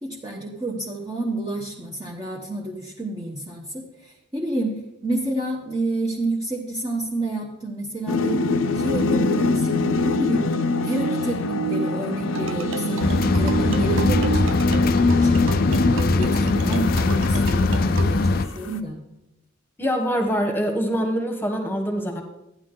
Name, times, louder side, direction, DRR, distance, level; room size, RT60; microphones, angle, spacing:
voice 1, 0.0-8.5 8.7-10.5 10.8-15.5 15.9-19.0, right 2 dB, 20° right, -3 dB, 1.1 m, -30 dB
sound 1, 8.1-18.8, left 2 dB, 80° left, 0.7 m, -24 dB
sound 2, 12.3-18.2, right 5 dB, 70° right, 0.5 m, -36 dB
sound 3, 13.0-18.5, left 3 dB, 45° left, 0.4 m, -21 dB
voice 2, 19.8-22.2, equal, 10° left, 3 dB, 1.3 m, -24 dB
13.0 x 9.6 x 3.8 m, 0.89 s
head